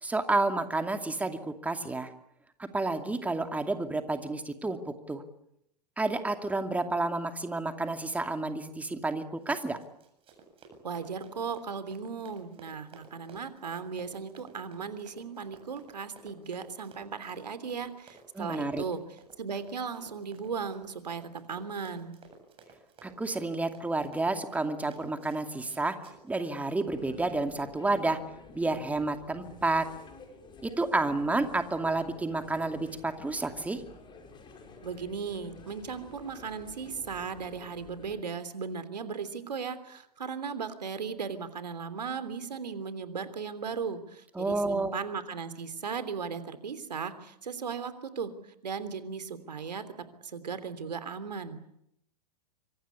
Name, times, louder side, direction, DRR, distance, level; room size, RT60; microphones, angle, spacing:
voice 1, 0.0-2.1 2.7-5.2 6.0-9.8 18.4-18.8 23.0-26.0 26.3-28.2 28.5-29.9 30.6-33.8 44.4-44.9, right 2 dB, 5° right, 7 dB, 2.5 m, -30 dB
Run, 9.4-26.6, right 4 dB, 25° right, 7.9 m, -55 dB
voice 2, 10.8-19.0 19.4-22.1 34.8-48.3 48.6-49.8 50.2-51.6, right 5 dB, 75° right, 12 dB, 3.2 m, -37 dB
sound 1, 26.9-38.2, left 4 dB, 20° left, 6.0 m, -51 dB
26.0 x 25.5 x 8.4 m, 0.77 s
figure-of-eight pair, 105°, 21 cm